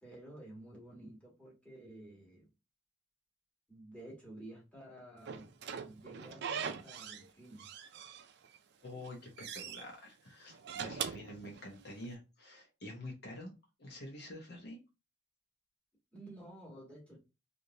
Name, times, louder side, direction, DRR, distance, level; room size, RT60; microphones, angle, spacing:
voice 1, 0.0-2.5 3.7-5.5 5.8-7.7 16.1-17.2, right 1 dB, 5° left, 1.5 m, -52 dB
Slam / Squeak, 5.3-7.3 7.6-8.6 8.9-9.8 10.5-12.0, right 7 dB, 60° right, 0.4 m, -42 dB
voice 2, 8.8-13.5 13.8-14.8, left 1 dB, 55° left, 0.9 m, -47 dB
3.3 x 2.6 x 2.7 m
head